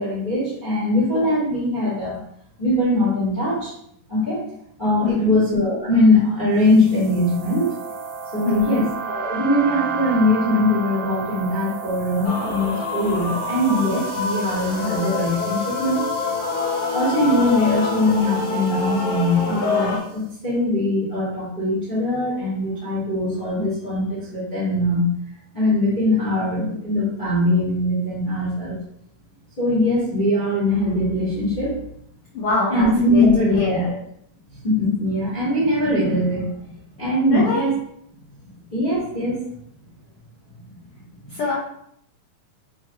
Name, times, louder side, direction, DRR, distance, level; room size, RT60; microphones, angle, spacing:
voice 1, 0.0-2.2 2.6-3.7 4.1-4.5 4.8-7.7 8.3-16.2 16.9-25.1 25.5-28.8 29.6-31.8 32.7-34.0 34.5-36.7 37.0-37.7 38.7-39.4 40.5-40.6 41.2-41.4, left 1 dB, 35° left, -9 dB, 0.8 m, -21 dB
voice 2, 5.0-5.4 8.4-8.8 32.3-33.2 33.5-33.9 37.3-37.6 41.3-41.5, left 3 dB, 90° left, -7 dB, 1.2 m, -24 dB
sound 1, 6.6-20.0, right 6 dB, 90° right, 2.4 m, -34 dB
Male singing / Female singing / Musical instrument, 12.2-20.0, left 3 dB, 75° left, 1.9 m, -26 dB
5.9 x 2.4 x 3.0 m, 0.71 s
omnidirectional pair, 3.8 m